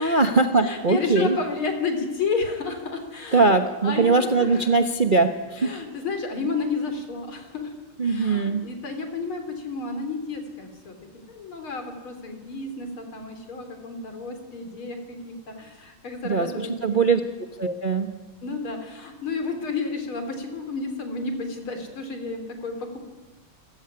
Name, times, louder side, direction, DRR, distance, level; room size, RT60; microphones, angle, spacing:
voice 1, 0.0-1.4 3.3-5.7 8.0-8.7 16.2-17.2 17.6-18.1, right 4 dB, 35° right, 6 dB, 0.8 m, -21 dB
voice 2, 0.6-3.5 3.8-4.7 5.6-7.7 8.0-11.0 11.3-17.1 18.4-23.0, left 4 dB, 70° left, 6 dB, 4.1 m, -31 dB
26.5 x 15.5 x 9.8 m, 1.2 s
omnidirectional pair, 2.4 m